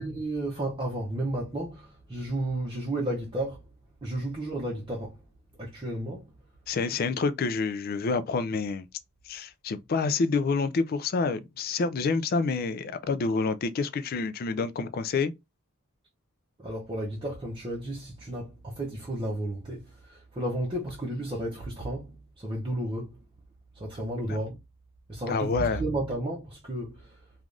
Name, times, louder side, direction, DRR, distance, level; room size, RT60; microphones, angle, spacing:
voice 1, 0.0-3.7 4.0-5.2 5.6-6.3 16.6-23.2 23.7-24.6 25.1-27.2, right 1 dB, 25° right, 0.7 m, -33 dB
voice 2, 6.7-8.9 9.3-15.3 24.3-24.4 25.3-25.8, left 4 dB, 45° left, 0.3 m, -28 dB
3.3 x 2.4 x 2.4 m
head